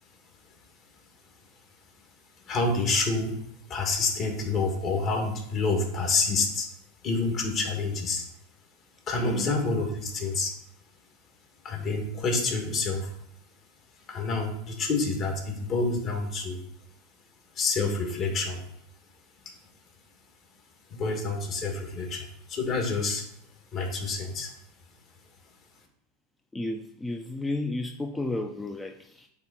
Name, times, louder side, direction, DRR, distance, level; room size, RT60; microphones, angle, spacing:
voice 1, 2.4-3.3 3.7-6.7 7.0-8.2 9.1-10.5 11.6-13.1 14.1-16.6 17.6-18.6 20.9-23.3 23.7-24.5, left 3 dB, 40° left, 1 dB, 2.3 m, -28 dB
voice 2, 9.2-9.5 26.5-29.3, left 2 dB, 10° left, 4 dB, 0.6 m, -32 dB
8.5 x 3.7 x 4.4 m, 0.76 s
hypercardioid pair, 110°, 0 cm